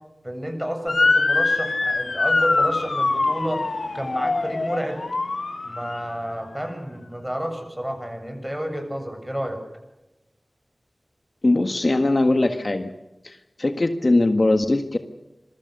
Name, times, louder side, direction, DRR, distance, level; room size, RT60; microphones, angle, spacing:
voice 1, 0.2-3.6 3.9-5.0 5.6-9.6, equal, 10° right, 5 dB, 7.4 m, -30 dB
Motor vehicle (road) / Siren, 0.9-6.1, left 3 dB, 75° left, 2.2 m, -23 dB
voice 2, 11.4-12.9 13.2-15.0, left 2 dB, 50° left, 7 dB, 1.6 m, -20 dB
26.5 x 22.5 x 6.7 m, 0.98 s
wide cardioid pair, 60°, 0 cm